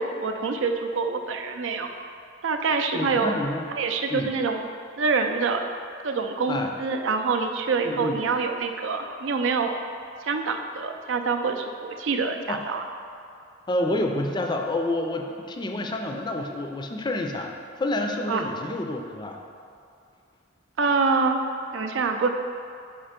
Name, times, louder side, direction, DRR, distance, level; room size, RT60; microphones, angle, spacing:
voice 1, 0.0-1.9 2.4-3.3 3.7-4.6 5.0-5.7 6.0-9.7 10.2-12.8 18.3-18.5 20.8-21.4 21.7-22.3, right 4 dB, 80° right, 5 dB, 0.5 m, -26 dB
voice 2, 2.9-3.7 4.1-4.3 6.5-6.7 7.8-8.2 12.5-12.6 13.7-17.5 17.8-19.4, left 1 dB, 25° left, 3 dB, 0.4 m, -28 dB
4.8 x 4.4 x 5.1 m, 2.4 s
head